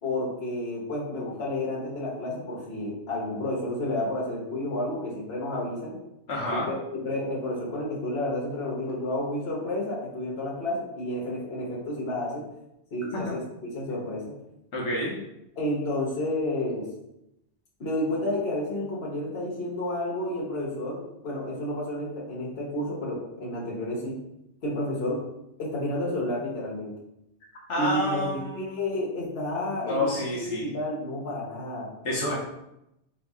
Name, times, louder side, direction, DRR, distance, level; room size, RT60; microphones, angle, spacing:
voice 1, 0.0-6.0 6.5-12.4 12.9-14.3 15.6-16.9 17.8-24.2 24.6-25.2 25.6-26.9 27.7-28.3 28.6-30.1 30.4-31.9 32.3-32.4, left 1 dB, 60° left, -4 dB, 1.2 m, -31 dB
voice 2, 6.3-6.7 13.1-13.3 14.7-15.1 27.7-28.9 29.8-30.7 32.0-32.4, left 1 dB, 85° left, -3 dB, 1.1 m, -29 dB
4.0 x 2.8 x 3.5 m, 0.85 s
omnidirectional pair, 1.2 m